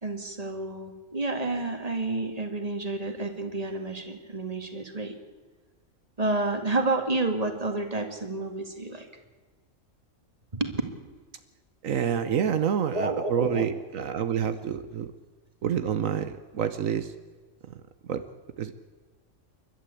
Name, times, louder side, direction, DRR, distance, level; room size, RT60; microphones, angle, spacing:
voice 1, 0.0-5.1 6.2-9.1 10.5-10.8 12.9-13.7, right 2 dB, 30° right, 6 dB, 2.3 m, -30 dB
voice 2, 11.8-15.1 15.6-17.1 18.1-18.2 18.6-18.7, right 8 dB, 80° right, 10 dB, 1.4 m, -28 dB
29.5 x 12.5 x 8.5 m, 1.3 s
omnidirectional pair, 1.4 m